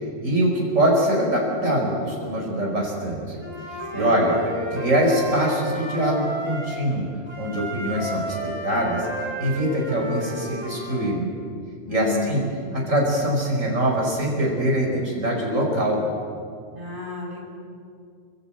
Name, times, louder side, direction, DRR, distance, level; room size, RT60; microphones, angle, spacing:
voice 1, 0.2-3.4 3.9-4.4 4.7-7.1 7.4-9.1 9.4-11.3 11.9-12.4 12.7-16.0, right 1 dB, 75° right, 0 dB, 5.1 m, -23 dB
Wind instrument woodwind instrument, 3.4-6.8 7.3-11.0, equal, 20° right, 6.1 m, -32 dB
voice 2, 3.9-4.3 11.9-12.4 16.7-17.4, left 3 dB, 40° right, -1 dB, 6.2 m, -31 dB
29.0 x 23.5 x 8.8 m, 2.2 s
omnidirectional pair, 1.3 m